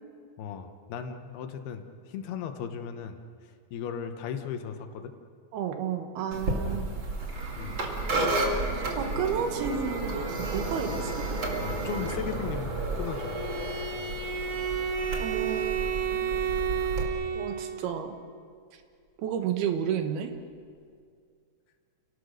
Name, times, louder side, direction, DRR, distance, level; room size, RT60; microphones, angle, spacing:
voice 1, 0.4-5.1 6.6-6.8 7.6-7.8 10.9-11.0 11.6-13.4, left 7 dB, 85° left, 7 dB, 3.2 m, -37 dB
voice 2, 5.5-6.8 8.7-11.3 15.2-15.8 16.1-16.5 17.4-18.2 19.2-20.3, right 8 dB, 80° right, 6 dB, 3.3 m, -32 dB
sound 1, 6.3-17.0, right 2 dB, 35° right, 2.6 m, -32 dB
Bowed string instrument, 13.1-17.9, right 7 dB, 60° right, 1.5 m, -31 dB
30.0 x 18.0 x 6.6 m, 2.2 s
omnidirectional pair, 4.4 m